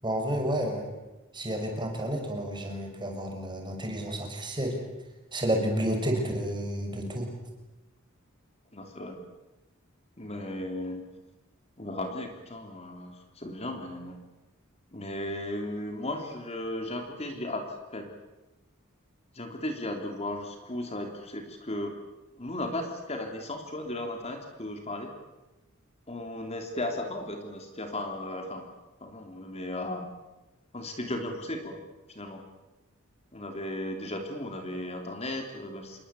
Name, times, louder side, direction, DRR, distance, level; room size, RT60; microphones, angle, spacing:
voice 1, 0.0-0.9 1.3-4.8 5.3-7.3, right 1 dB, 20° right, 2 dB, 6.2 m, -30 dB
voice 2, 8.7-9.2 10.2-11.1 11.8-14.2 14.9-18.1 19.3-21.9 22.4-25.1 26.1-28.7 29.0-30.1 30.7-31.8 32.1-32.4 33.3-36.0, left 1 dB, 30° left, 4 dB, 3.4 m, -36 dB
28.0 x 22.5 x 8.5 m, 1.0 s
head